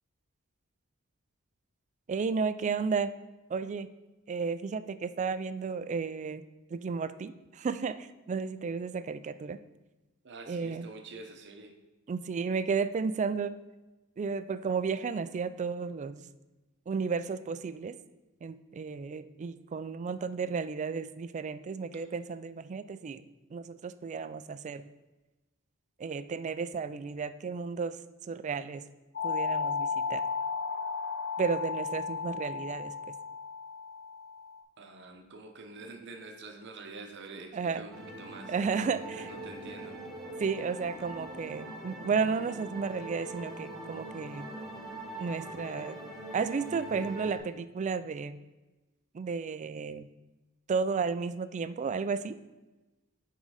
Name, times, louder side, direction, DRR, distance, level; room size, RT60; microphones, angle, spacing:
voice 1, 2.1-3.1 3.5-3.9 4.3-6.4 6.7-9.6 10.5-10.9 12.1-13.5 14.2-16.2 16.9-18.0 18.4-23.2 23.5-24.9 26.0-28.0 28.3-28.8 29.2-30.2 31.4-33.2 37.5-37.8 38.5-39.3 40.4-44.5 45.2-46.0 46.3-48.4 49.1-50.1 50.7-52.4, right 5 dB, 35° right, 13 dB, 0.3 m, -33 dB
voice 2, 10.2-11.7 34.8-38.5 38.9-39.9, right 3 dB, 55° right, 4 dB, 0.8 m, -46 dB
sound 1, 29.1-34.6, left 5 dB, 50° left, 1.1 m, -34 dB
sound 2, 37.9-47.4, right 1 dB, ahead, 1.4 m, -42 dB
9.3 x 3.8 x 4.8 m, 1.1 s
head